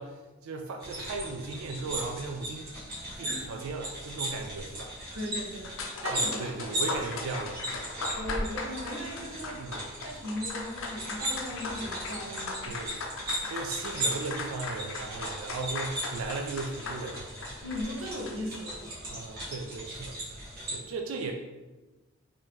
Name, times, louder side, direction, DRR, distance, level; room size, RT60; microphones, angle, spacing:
voice 1, 0.0-2.7 3.2-4.9 6.1-7.8 9.6-9.9 12.6-13.0 13.4-17.3 19.1-20.4 20.7-21.3, right 3 dB, 90° right, 3 dB, 0.3 m, -37 dB
sound 1, 0.8-20.8, right 1 dB, 50° right, 1.1 m, -37 dB
voice 2, 5.1-5.7 6.0-6.6 8.2-9.6 10.0-12.7 17.6-18.9, left 1 dB, 75° right, -2 dB, 0.8 m, -37 dB
sound 2, 5.6-18.6, left 3 dB, 75° left, 0.5 m, -38 dB
3.5 x 2.6 x 3.0 m, 1.2 s
head